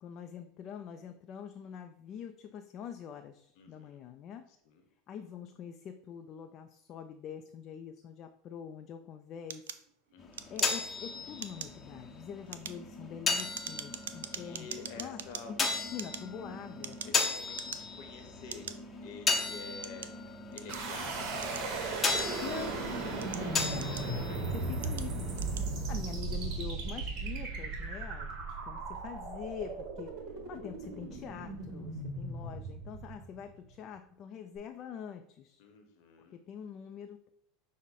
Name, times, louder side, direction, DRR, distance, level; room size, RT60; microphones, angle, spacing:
voice 1, 0.0-4.5 5.1-9.6 10.5-15.2 15.5-17.0 22.4-22.8 23.7-23.9 24.5-25.4 25.7-28.3 28.6-35.6 36.3-37.3, left 8 dB, 45° left, 6 dB, 0.3 m, -45 dB
voice 2, 3.6-4.0 4.6-4.8 10.1-10.6 14.3-15.5 17.0-18.7 19.0-22.6 23.3-24.9 25.9-26.0 35.6-36.4, left 5 dB, 60° left, 5 dB, 0.9 m, -50 dB
sound 1, 9.5-11.0 11.3-11.8 12.3-15.4 15.9-17.2 17.5-18.0 18.5-18.8 19.4-20.9 21.4-22.6 23.1-24.3 24.8-25.1 25.3-25.7, right 9 dB, 90° right, 0.3 m, -43 dB
sound 2, 10.2-25.7, left 4 dB, 25° left, 0.7 m, -36 dB
sound 3, 20.7-33.6, right 3 dB, 50° right, 1.1 m, -37 dB
6.1 x 2.1 x 4.1 m, 0.73 s
supercardioid pair, 105°, 0 cm